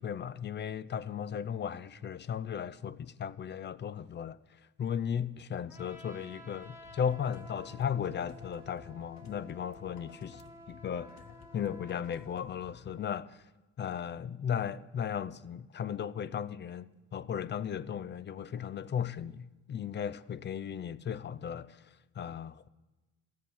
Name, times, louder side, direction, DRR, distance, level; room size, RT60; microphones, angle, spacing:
voice 1, 0.0-10.4 10.7-11.2 11.5-13.5 13.8-22.7, left 8 dB, 35° left, 0.4 m, -36 dB
Trumpet, 5.7-12.3, equal, 10° right, 1.4 m, -52 dB
sound 1, 6.6-13.0, left 7 dB, 65° left, 1.0 m, -55 dB
13.5 x 7.4 x 5.8 m
cardioid pair, 90°, 30 cm